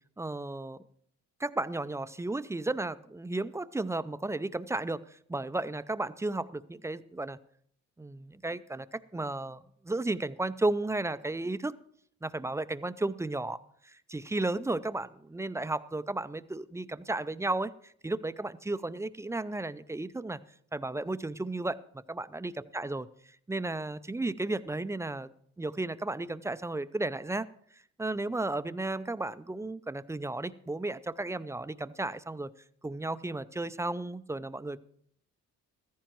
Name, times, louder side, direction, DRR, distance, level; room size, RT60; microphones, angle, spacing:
voice 1, 0.2-0.8 1.4-7.4 8.0-11.8 12.2-13.6 13.8-20.4 20.7-23.0 23.5-25.3 25.6-27.5 28.0-32.5 32.8-34.8, right 2 dB, 10° right, 14 dB, 0.4 m, -34 dB
15.0 x 14.0 x 3.0 m, 0.64 s
cardioid pair, 90°, 30 cm